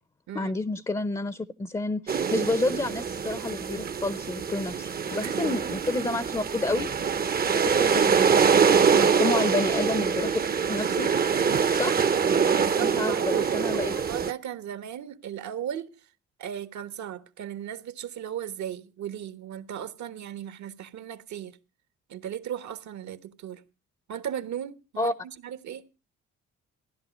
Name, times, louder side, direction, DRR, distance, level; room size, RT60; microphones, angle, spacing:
voice 1, 0.3-6.9 7.4-8.4 8.9-10.4 10.7-11.1 11.7-12.0 12.8-13.9 25.0-25.1, left 2 dB, 15° left, 0.6 m, -30 dB
sound 1, 2.1-14.3, right 6 dB, 30° right, 0.7 m, -24 dB
voice 2, 5.2-5.6 8.9-9.3 12.6-16.1 16.4-21.6 22.1-23.6 24.1-25.8, right 9 dB, 70° right, 1.2 m, -36 dB
15.5 x 11.0 x 5.2 m
cardioid pair, 90°, 30 cm